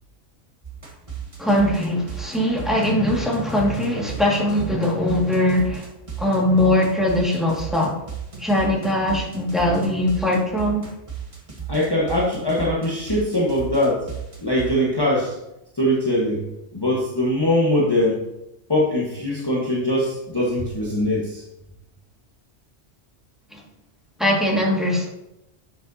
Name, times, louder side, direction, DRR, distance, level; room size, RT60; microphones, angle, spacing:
sound 1, 0.6-14.8, right 8 dB, 30° right, 1.2 m, -34 dB
voice 1, 1.4-5.9 6.2-7.9 8.4-10.8 23.5-23.6 24.2-25.1, left 1 dB, ahead, -4 dB, 1.9 m, -21 dB
voice 2, 11.7-14.1 14.4-15.4 15.7-16.5 16.7-18.2 18.7-21.4, left 1 dB, 20° left, -5 dB, 1.3 m, -22 dB
10.5 x 7.3 x 2.8 m, 0.88 s
omnidirectional pair, 1.2 m